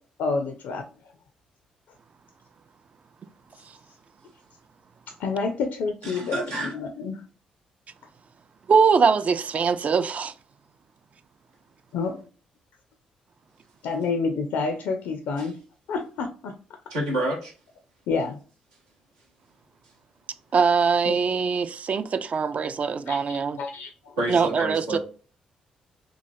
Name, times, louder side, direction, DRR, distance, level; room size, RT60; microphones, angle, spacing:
voice 1, 0.2-0.8 5.2-7.2 9.6-9.7 11.9-12.2 13.8-15.6 15.9-16.8 18.1-18.4 21.1-21.2 23.1-23.2 23.6-24.1, left 4 dB, 70° left, 0.4 m, -29 dB
voice 2, 6.0-6.7 15.4-15.5 16.9-17.5 24.2-25.0, right 1 dB, 85° right, 0.8 m, -29 dB
voice 3, 8.7-10.3 20.5-23.6 24.3-25.0, right 5 dB, 45° right, 0.4 m, -22 dB
3.0 x 2.4 x 2.5 m
hypercardioid pair, 45°, 3 cm